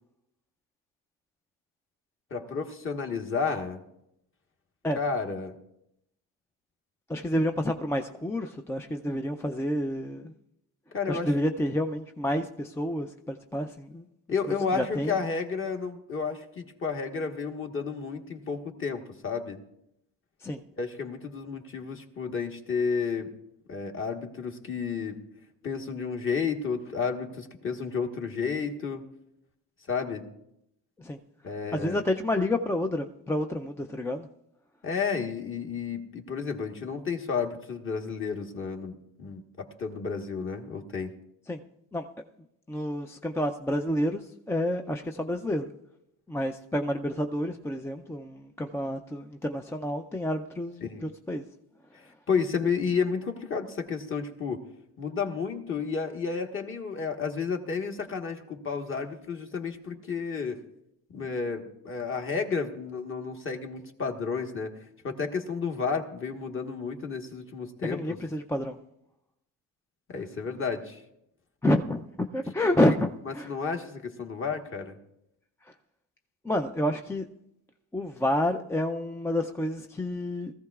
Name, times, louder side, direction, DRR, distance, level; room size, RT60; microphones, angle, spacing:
voice 1, 2.3-3.8 4.9-5.5 10.9-11.3 14.3-19.6 20.8-23.3 23.7-25.2 25.6-29.1 29.9-30.3 31.4-32.0 34.8-41.1 50.8-51.0 52.3-54.6 55.0-60.6 61.1-64.7 65.0-68.2 70.1-71.0 72.7-72.8 73.2-75.0, left 5 dB, 35° left, 3 dB, 1.3 m, -31 dB
voice 2, 7.1-10.3 11.1-14.0 14.7-15.1 20.4-20.6 31.0-31.2 31.7-34.3 41.5-41.6 41.9-42.0 42.7-45.7 46.3-50.8 51.3-51.4 67.9-68.8 71.6-72.0 72.3-73.5 76.5-77.2 77.9-80.5, left 1 dB, 5° left, 5 dB, 0.4 m, -29 dB
20.5 x 14.5 x 2.4 m, 0.82 s
cardioid pair, 130°, 36 cm